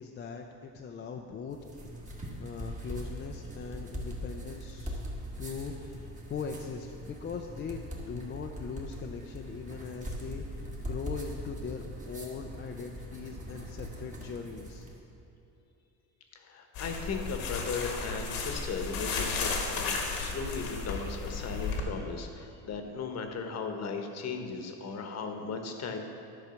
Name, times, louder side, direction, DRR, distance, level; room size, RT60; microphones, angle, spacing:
voice 1, 0.0-1.6 2.1-5.0 5.4-5.7 6.3-14.9, left 5 dB, 30° left, 2 dB, 0.4 m, -40 dB
sound 1, 1.5-15.0, equal, 20° right, 1.4 m, -41 dB
voice 2, 16.3-26.0, left 5 dB, 45° left, 5 dB, 1.1 m, -37 dB
sound 2, 16.7-21.8, left 4 dB, 85° left, 1.5 m, -34 dB
11.0 x 4.7 x 6.9 m, 2.8 s
cardioid pair, 140°, 35 cm